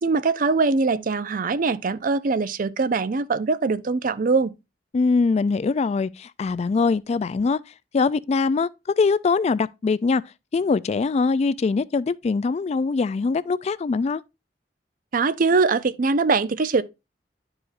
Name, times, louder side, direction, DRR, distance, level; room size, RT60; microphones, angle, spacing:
voice 1, 0.0-4.5 15.1-16.8, right 4 dB, 50° right, 0.5 m, -22 dB
voice 2, 4.9-7.6 7.9-8.7 9.0-10.2 10.5-14.2, left 4 dB, 40° left, 0.3 m, -22 dB
11.0 x 4.9 x 2.5 m
head